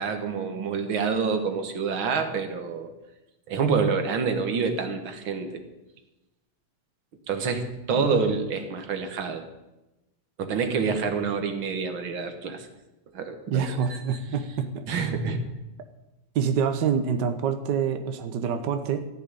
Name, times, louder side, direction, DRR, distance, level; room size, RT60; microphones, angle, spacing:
voice 1, 0.0-2.9 3.5-5.6 7.3-9.4 10.4-12.7 13.1-14.2 14.9-15.4, right 5 dB, 50° right, 6 dB, 2.0 m, -27 dB
voice 2, 13.5-14.8 16.3-19.1, right 7 dB, 80° right, 8 dB, 0.9 m, -26 dB
14.5 x 7.3 x 10.0 m, 1.0 s
omnidirectional pair, 3.4 m